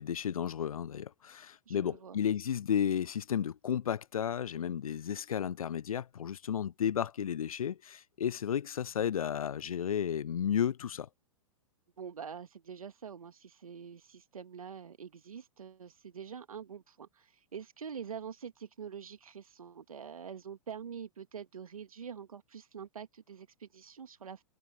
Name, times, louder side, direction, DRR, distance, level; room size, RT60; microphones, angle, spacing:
voice 1, 0.0-11.1, left 9 dB, 80° left, 0.5 m, -33 dB
voice 2, 1.7-2.2 12.0-24.4, right 7 dB, 75° right, 2.2 m, -45 dB
figure-of-eight pair, 110°, 18 cm